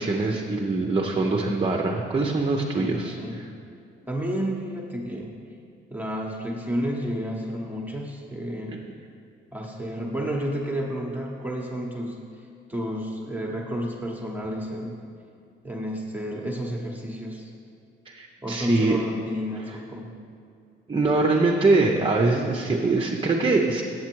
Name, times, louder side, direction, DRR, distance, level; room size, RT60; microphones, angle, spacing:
voice 1, 0.0-3.2 18.1-19.0 20.9-23.8, right 3 dB, 25° right, 0 dB, 0.7 m, -23 dB
voice 2, 2.7-3.4 4.1-5.3 5.9-8.8 9.5-12.2 12.7-14.9 15.6-17.5 18.4-20.1, equal, 10° right, -1 dB, 1.0 m, -31 dB
7.9 x 7.3 x 4.6 m, 2.4 s
cardioid pair, 90°, 20 cm